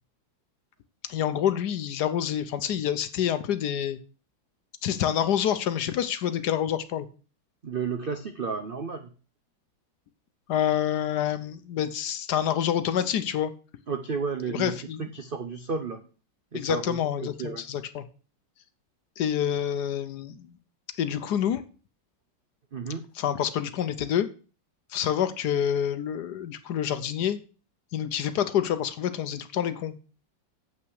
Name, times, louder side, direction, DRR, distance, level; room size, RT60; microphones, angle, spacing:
voice 1, 1.1-4.0 4.8-7.1 10.5-13.5 14.5-15.0 16.5-18.1 19.2-20.6 21.0-21.6 23.2-24.3 24.9-27.4 27.9-29.9, left 9 dB, 65° left, 11 dB, 1.1 m, -27 dB
voice 2, 7.6-9.1 13.9-16.1 16.5-17.6 22.7-23.0, right 5 dB, 65° right, 7 dB, 0.5 m, -32 dB
8.0 x 5.8 x 6.3 m, 0.37 s
omnidirectional pair, 2.1 m